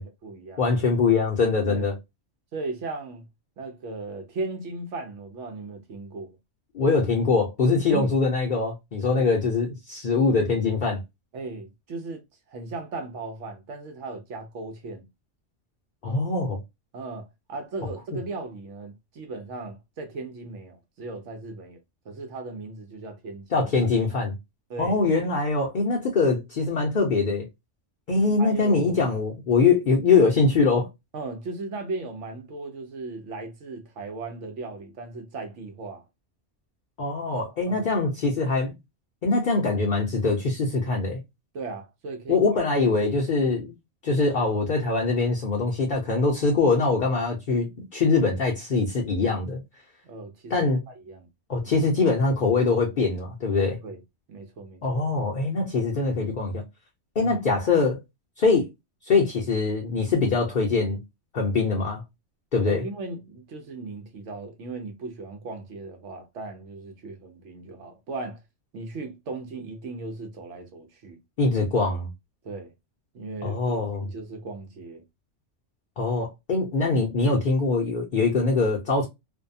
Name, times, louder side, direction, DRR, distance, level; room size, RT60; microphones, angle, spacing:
voice 1, 0.0-0.6 1.6-2.0 2.5-3.3 3.6-6.4 7.9-8.1 9.1-9.2 11.3-15.1 16.9-21.8 22.0-23.7 24.7-25.0 28.4-29.0 31.1-36.0 37.7-37.9 41.5-42.6 50.0-50.5 50.9-51.3 51.6-51.8 53.6-54.0 54.3-55.0 57.2-57.4 62.6-68.4 68.7-71.2 72.4-72.7 73.1-75.0, right 3 dB, 75° right, 1.0 m, -37 dB
voice 2, 0.6-1.9 6.7-11.0 16.0-16.6 18.1-18.2 23.5-24.3 24.8-27.5 28.1-30.9 37.0-38.7 39.2-41.2 42.3-43.7 44.0-49.6 50.5-50.8 51.5-53.8 54.8-56.6 57.2-58.0 58.4-58.7 59.0-61.0 61.3-62.0 62.5-62.8 71.4-72.1 73.4-74.1 76.0-79.1, left 4 dB, 50° left, 0.7 m, -23 dB
2.6 x 2.2 x 2.5 m
omnidirectional pair, 1.3 m